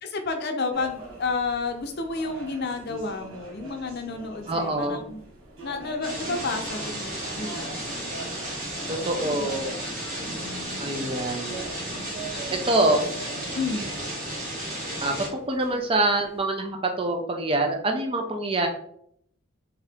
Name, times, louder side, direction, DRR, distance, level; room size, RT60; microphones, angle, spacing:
voice 1, 0.0-5.2 5.6-7.8 8.8-9.7 10.2-10.8 13.5-13.9, left 3 dB, 50° left, 5 dB, 0.6 m, -31 dB
sound 1, 0.7-16.5, right 3 dB, 70° right, 1.2 m, -43 dB
voice 2, 4.5-5.0 8.9-9.7 10.8-11.6 12.7-13.1 15.0-18.7, right 2 dB, 25° right, 4 dB, 0.5 m, -25 dB
sound 2, 6.0-15.3, right 1 dB, 45° right, 1.3 m, -33 dB
3.6 x 2.9 x 3.4 m, 0.66 s
head